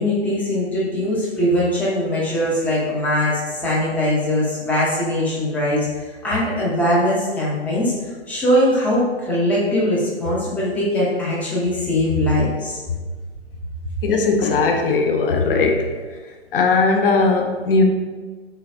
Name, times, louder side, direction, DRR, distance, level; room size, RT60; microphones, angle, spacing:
voice 1, 0.0-5.9 6.2-7.9 8.3-12.8, left 1 dB, 5° left, -6 dB, 0.4 m, -21 dB
voice 2, 14.0-15.9 16.5-17.8, left 3 dB, 55° left, 4 dB, 0.6 m, -18 dB
3.2 x 3.1 x 2.5 m, 1.4 s
figure-of-eight pair, 115°, 33 cm